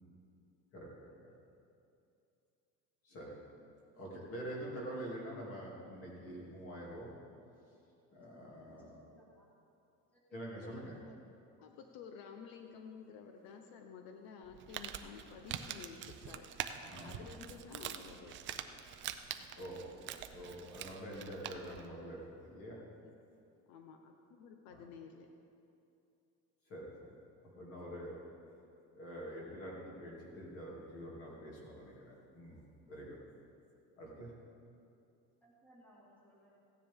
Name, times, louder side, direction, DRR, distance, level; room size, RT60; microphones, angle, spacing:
voice 1, 0.7-1.3 3.0-3.3 3.9-7.1 8.1-9.0 10.3-10.9 16.9-17.3 19.6-19.9 20.3-22.8 24.7-24.8 26.7-27.1 27.4-28.2 28.9-33.2 34.0-34.3, equal, 40° left, -4 dB, 2.6 m, -46 dB
voice 2, 8.0-9.5 10.1-10.8 35.4-36.6, equal, 5° left, -6 dB, 1.9 m, -64 dB
voice 3, 11.6-16.5 17.0-18.4 18.7-18.9 23.0-23.2 23.7-25.3, left 6 dB, 80° left, 4 dB, 0.9 m, -52 dB
Crumpling crinkling, 14.4-21.9, right 10 dB, 35° right, 0.4 m, -45 dB
15.5 x 10.0 x 3.6 m, 2.6 s
cardioid pair, 180°, 34 cm